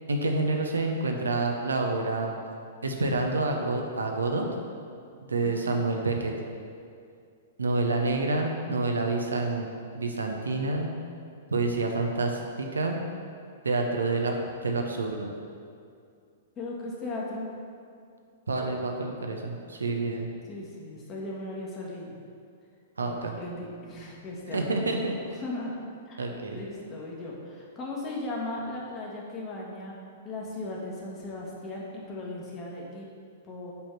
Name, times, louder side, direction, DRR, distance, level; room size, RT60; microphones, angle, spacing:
voice 1, 0.1-2.3 2.8-4.5 5.3-6.3 7.6-9.7 9.9-10.9 11.5-13.0 13.6-14.3 14.6-15.3 18.5-20.3 23.0-23.4 24.5-25.1 26.2-26.6, right 3 dB, 75° right, 3 dB, 0.8 m, -28 dB
voice 2, 5.4-5.8 16.6-17.5 20.5-22.1 23.0-24.6 24.9-25.0 25.4-25.7 26.1-26.2 26.5-30.0 30.2-33.1 33.4-33.7, left 2 dB, 25° left, -3 dB, 1.5 m, -37 dB
5.4 x 4.3 x 6.0 m, 2.3 s
figure-of-eight pair, 105°, 0 cm